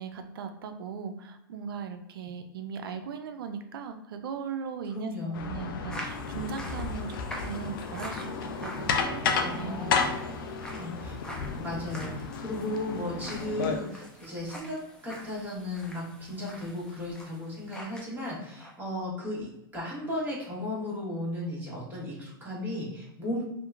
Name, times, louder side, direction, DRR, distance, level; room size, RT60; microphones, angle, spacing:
voice 1, 0.0-10.5, right 6 dB, 75° right, 7 dB, 0.4 m, -39 dB
voice 2, 4.9-5.5 9.5-9.9 10.7-11.2 11.5-14.8 15.0-23.4, left 1 dB, 15° right, -6 dB, 1.1 m, -35 dB
sound 1, 5.3-13.8, left 5 dB, 70° left, 0.4 m, -32 dB
sound 2, 5.9-18.1 18.4-18.7, equal, 5° left, 0.5 m, -45 dB
2.8 x 2.1 x 2.3 m, 0.83 s
hypercardioid pair, 110°, 12 cm